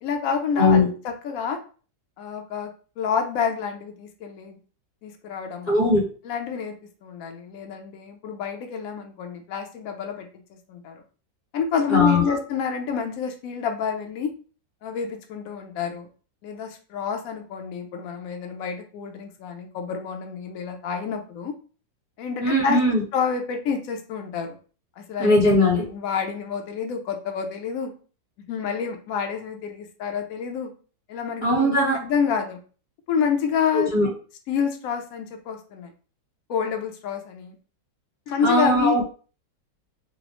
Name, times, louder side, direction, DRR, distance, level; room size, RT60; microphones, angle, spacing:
voice 1, 0.0-1.6 2.2-2.7 3.0-4.6 5.0-5.8 6.2-6.7 7.0-10.3 10.7-11.0 11.5-14.3 14.8-16.1 16.4-21.5 22.2-22.8 23.1-24.5 25.0-25.3 25.8-27.9 28.5-30.7 31.1-32.6 33.1-33.9 34.5-35.9 36.5-37.6 38.3-39.0, left 6 dB, 65° left, 4 dB, 0.9 m, -28 dB
voice 2, 0.6-0.9 5.7-6.0 11.9-12.3 22.4-23.0 25.2-25.8 31.4-32.0 33.7-34.1 38.4-39.1, left 1 dB, 30° left, -5 dB, 1.2 m, -19 dB
4.0 x 2.0 x 3.0 m, 0.39 s
omnidirectional pair, 1.9 m